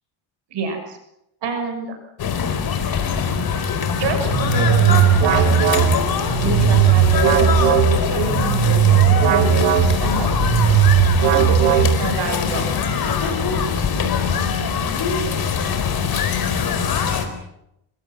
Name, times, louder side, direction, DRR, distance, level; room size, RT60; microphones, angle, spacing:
voice 1, 0.5-1.0 1.4-2.0 4.0-5.4 6.4-9.0 9.3-10.8 11.3-13.0, right 4 dB, 55° right, 5 dB, 6.7 m, -27 dB
sound 1, 2.2-17.3, left 6 dB, 45° left, 4.4 m, -22 dB
sound 2, 4.3-12.3, right 10 dB, 90° right, 4.1 m, -17 dB
27.0 x 25.0 x 6.2 m, 0.81 s
cardioid pair, 160°, 50 cm